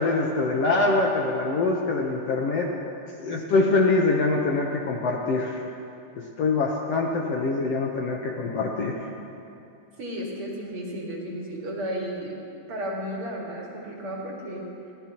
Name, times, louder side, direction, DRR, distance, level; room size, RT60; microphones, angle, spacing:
voice 1, 0.0-2.7 3.2-5.6 6.4-8.9, left 3 dB, 65° left, -1 dB, 1.8 m, -24 dB
voice 2, 10.0-12.3 12.7-14.7, equal, 45° right, -3 dB, 2.7 m, -33 dB
23.5 x 17.0 x 3.0 m, 2.7 s
omnidirectional pair, 3.7 m